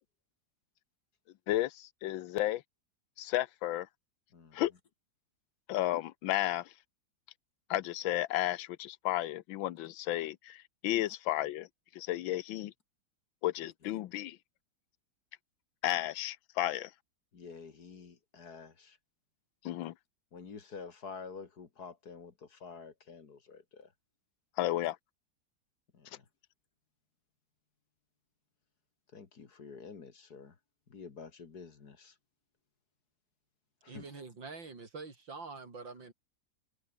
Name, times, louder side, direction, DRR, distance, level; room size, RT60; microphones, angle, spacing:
voice 1, 1.5-2.6 3.2-3.9 4.5-4.7 5.7-6.7 7.7-11.7 11.9-12.7 13.4-14.4 15.8-16.9 19.6-19.9 24.6-25.0, left 14 dB, 90° left, 1.5 m, -33 dB
voice 2, 17.3-19.0 20.3-23.9 25.9-26.2 29.1-30.5 30.9-32.1 33.8-34.2, left 5 dB, 55° left, 2.6 m, -49 dB
voice 3, 33.9-36.1, right 4 dB, 75° right, 4.6 m, -45 dB
omnidirectional pair, 2.1 m